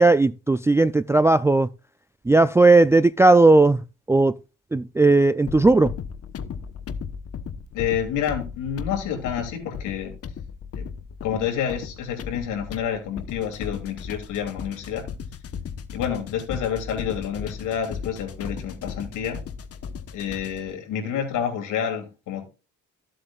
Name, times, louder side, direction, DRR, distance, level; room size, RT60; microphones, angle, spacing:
voice 1, 0.0-1.7 2.3-3.8 4.1-4.3 4.7-5.9, right 2 dB, 10° right, 0.3 m, -16 dB
sound 1, 5.5-20.7, left 6 dB, 50° left, 1.1 m, -36 dB
voice 2, 7.7-10.1 10.7-10.9 11.2-15.1 15.9-19.4 20.1-22.4, left 8 dB, 90° left, 2.9 m, -28 dB
14.0 x 7.7 x 2.4 m
cardioid pair, 90°, 30 cm